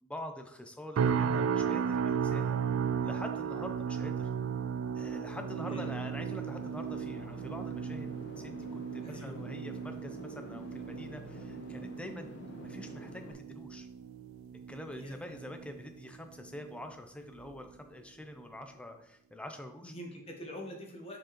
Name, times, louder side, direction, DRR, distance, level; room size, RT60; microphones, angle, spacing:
voice 1, 0.0-2.6 3.0-4.3 4.9-8.1 8.4-12.3 12.6-13.9 14.7-19.9, left 1 dB, 5° left, 6 dB, 0.5 m, -45 dB
sound 1, 1.0-16.2 16.5-16.9 17.4-17.6, right 7 dB, 85° right, 0.3 m, -35 dB
sound 2, 5.3-13.3, left 1 dB, 55° left, 0.8 m, -48 dB
voice 2, 9.0-9.4 14.9-15.4 19.8-21.2, equal, 30° left, 2 dB, 1.1 m, -45 dB
7.3 x 4.6 x 3.0 m, 0.82 s
head